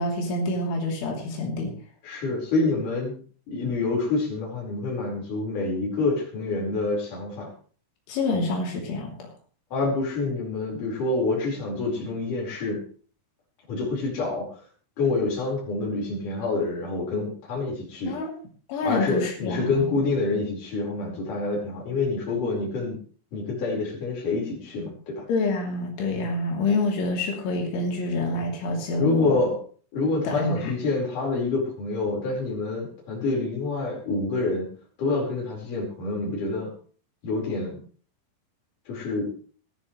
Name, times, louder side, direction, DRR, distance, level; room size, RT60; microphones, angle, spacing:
voice 1, 0.0-1.7 8.1-9.3 18.1-18.3 18.7-19.9 25.3-29.4 30.2-30.8, left 2 dB, 90° left, 0 dB, 5.5 m, -27 dB
voice 2, 2.0-3.1 3.5-7.5 9.7-12.8 13.7-14.5 15.0-18.2 18.8-23.0 23.3-25.3 29.0-29.6 29.9-34.7 35.0-36.7 37.2-37.8 38.9-39.3, left 3 dB, 45° left, -2 dB, 6.1 m, -27 dB
20.5 x 12.5 x 3.2 m, 0.42 s
omnidirectional pair, 5.3 m